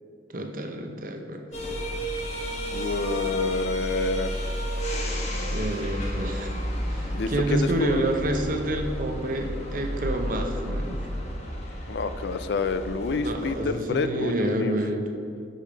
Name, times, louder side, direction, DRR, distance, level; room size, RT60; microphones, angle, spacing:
voice 1, 0.3-1.5 5.5-6.6 6.9-11.0 13.2-15.1, right 1 dB, 45° right, 4 dB, 0.7 m, -28 dB
sound 1, 1.5-13.7, equal, 35° left, 1.1 m, -32 dB
voice 2, 2.7-4.3 7.1-8.0 11.9-14.8, left 4 dB, 60° left, 11 dB, 0.4 m, -28 dB
6.6 x 6.6 x 5.1 m, 2.4 s
head